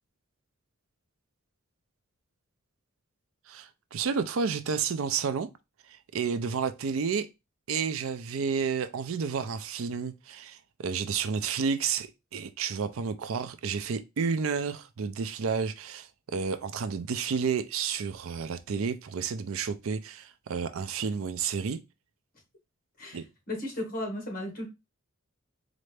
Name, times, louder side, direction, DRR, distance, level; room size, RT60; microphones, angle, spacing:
voice 1, 3.5-5.5 5.9-7.3 7.7-21.8 23.1-23.2, right 6 dB, 70° right, 0.4 m, -31 dB
voice 2, 23.5-24.7, left 1 dB, 45° left, 1.5 m, -34 dB
4.2 x 2.6 x 3.2 m
head